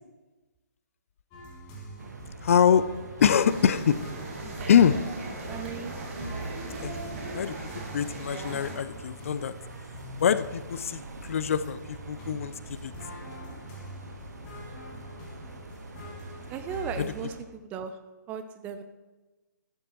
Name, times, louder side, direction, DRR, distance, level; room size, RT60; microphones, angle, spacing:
sound 1, 1.3-17.0, equal, 25° left, 1.9 m, -44 dB
sound 2, 2.0-17.4, right 3 dB, 60° right, 1.2 m, -45 dB
voice 1, 2.4-2.8 3.2-4.0 4.7-5.0 6.8-9.5 10.2-12.9 17.0-17.1, left 8 dB, 45° left, 15 dB, 0.4 m, -24 dB
sound 3, 3.3-8.8, right 2 dB, 45° right, 2.0 m, -39 dB
voice 2, 5.5-5.9 16.5-18.0 18.3-18.8, right 6 dB, 15° right, 9 dB, 0.4 m, -36 dB
11.5 x 9.7 x 3.0 m, 1.2 s
figure-of-eight pair, 135°, 10 cm